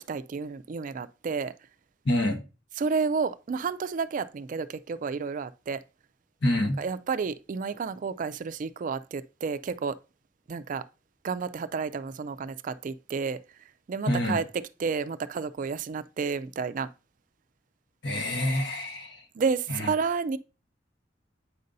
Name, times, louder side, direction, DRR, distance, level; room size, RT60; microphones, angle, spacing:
voice 1, 0.0-1.5 2.8-5.8 6.6-10.0 10.5-10.8 11.2-13.4 13.9-16.9 19.4-20.4, right 5 dB, 45° right, 0.3 m, -31 dB
voice 2, 2.0-2.4 6.4-6.8 14.1-14.4 18.0-19.2, left 1 dB, 65° left, 1.3 m, -26 dB
8.4 x 5.3 x 2.6 m
head